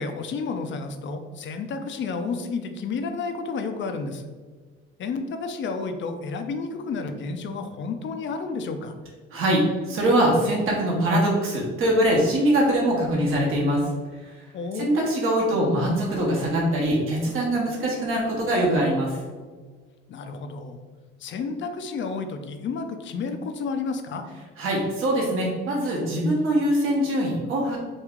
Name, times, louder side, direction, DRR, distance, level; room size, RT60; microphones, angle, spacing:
voice 1, 0.0-4.3 5.0-8.9 14.5-14.9 20.1-20.8 21.2-24.2, left 4 dB, 40° left, 7 dB, 0.5 m, -31 dB
voice 2, 9.3-13.9 14.2-14.3 14.7-19.2 24.6-27.8, right 1 dB, 45° right, -3 dB, 1.0 m, -23 dB
3.0 x 2.3 x 3.6 m, 1.4 s
supercardioid pair, 80°, 29 cm